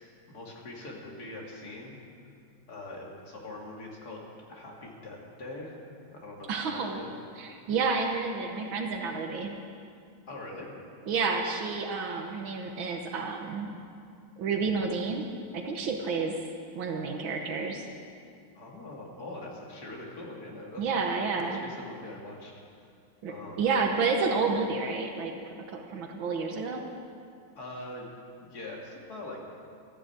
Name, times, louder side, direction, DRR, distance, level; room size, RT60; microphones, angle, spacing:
voice 1, 0.3-2.0 2.7-4.2 4.5-7.1 10.3-10.7 18.5-20.9 21.4-22.5 23.3-23.6 27.5-28.1 28.4-29.4, left 2 dB, 50° left, -2 dB, 2.9 m, -42 dB
voice 2, 6.5-7.0 7.4-9.6 11.1-13.8 14.4-15.3 15.5-16.3 16.8-17.9 20.8-21.6 23.2-25.3 25.7-26.8, right 4 dB, 75° right, 3 dB, 1.9 m, -30 dB
14.0 x 10.5 x 8.2 m, 2.4 s
omnidirectional pair, 2.2 m